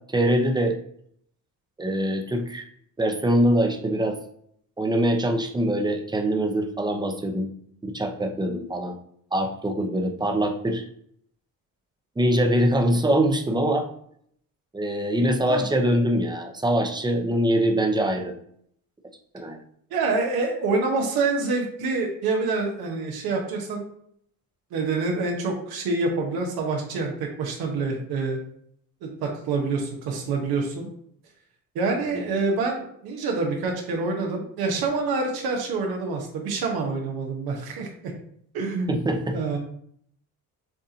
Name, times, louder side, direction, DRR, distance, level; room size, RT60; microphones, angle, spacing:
voice 1, 0.1-0.8 1.8-2.6 3.0-4.2 4.8-7.5 7.8-9.0 9.3-10.8 12.2-13.9 14.7-18.3 19.3-19.6 32.1-32.2 38.9-39.4, right 1 dB, 10° right, 4 dB, 0.7 m, -23 dB
voice 2, 19.9-23.9 24.7-28.4 29.0-30.9 31.7-38.1 38.5-39.1 39.3-39.6, right 3 dB, 85° right, 1 dB, 1.1 m, -26 dB
7.3 x 2.5 x 2.8 m, 0.67 s
cardioid pair, 95°, 36 cm